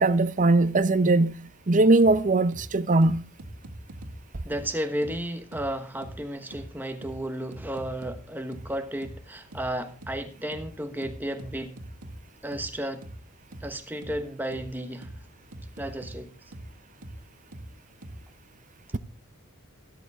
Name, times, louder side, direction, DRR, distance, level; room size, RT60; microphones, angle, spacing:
voice 1, 0.0-3.2, right 2 dB, 35° right, 0.7 m, -21 dB
sound 1, 2.0-2.1 2.5-2.6 3.0-4.1 4.5-4.6 5.0-5.1 5.5-5.6 6.0-6.1 6.5-6.6 7.0-7.1 7.5-8.1 8.5-8.6 9.0-9.1 9.5-9.6 10.0-10.1 10.5-10.6 11.0-12.1 12.5-12.6 13.0-13.1 13.5-13.6 14.0-14.1 14.5-14.6 15.0-15.1 15.5-16.1 16.5-16.6 17.0-17.1 17.5-17.6 18.0-18.1, right 1 dB, 80° right, 1.9 m, -42 dB
voice 2, 4.4-11.8 12.4-13.0 13.6-15.1 15.8-16.3, right 1 dB, 10° right, 1.2 m, -33 dB
13.5 x 12.5 x 3.6 m
head